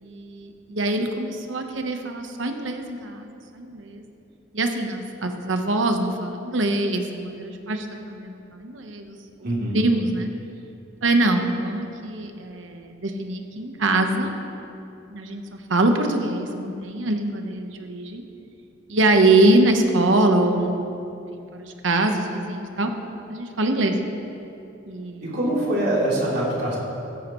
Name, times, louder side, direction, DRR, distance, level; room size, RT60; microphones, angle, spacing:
voice 1, 0.0-4.0 4.5-9.1 9.7-10.3 11.0-14.3 15.1-18.2 18.9-20.9 21.3-22.9 23.3-24.0 24.9-25.3, right 2 dB, 75° right, 5 dB, 1.1 m, -23 dB
voice 2, 9.4-9.8 25.2-26.8, right 1 dB, 55° right, -6 dB, 3.5 m, -24 dB
16.0 x 13.0 x 3.1 m, 2.8 s
head